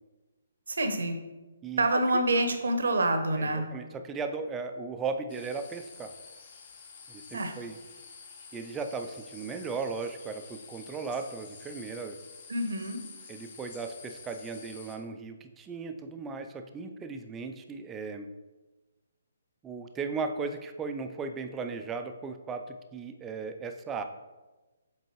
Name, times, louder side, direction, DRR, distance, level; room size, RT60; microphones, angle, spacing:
voice 1, 0.7-1.2 1.8-3.7 7.3-7.5 12.5-13.0, right 1 dB, 65° right, 6 dB, 0.8 m, -27 dB
voice 2, 3.4-6.1 7.1-7.8 8.5-12.2 13.3-18.3 19.6-24.0, right 4 dB, 15° right, 6 dB, 0.4 m, -36 dB
sound 1, 5.3-15.0, left 5 dB, 45° left, 0.9 m, -49 dB
7.6 x 4.6 x 3.1 m, 1.2 s
figure-of-eight pair, 135°, 0 cm